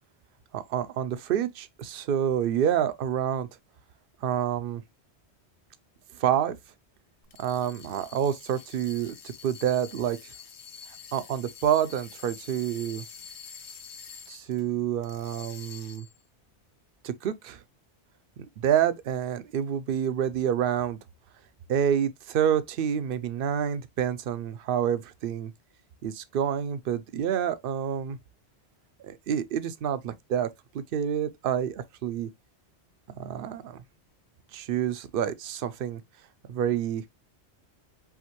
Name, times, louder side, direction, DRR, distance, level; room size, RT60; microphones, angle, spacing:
voice 1, 0.5-3.5 4.2-4.8 6.1-6.6 7.4-10.3 11.1-13.0 14.3-16.1 17.0-17.6 18.4-21.0 21.7-25.5 26.0-28.2 29.0-32.3 33.2-33.8 34.5-36.0 36.5-37.0, right 9 dB, 60° right, 0.7 m, -28 dB
sound 1, 7.2-14.6 15.0-16.2, left 6 dB, 80° left, 1.1 m, -47 dB
5.7 x 2.6 x 2.9 m
omnidirectional pair, 1.1 m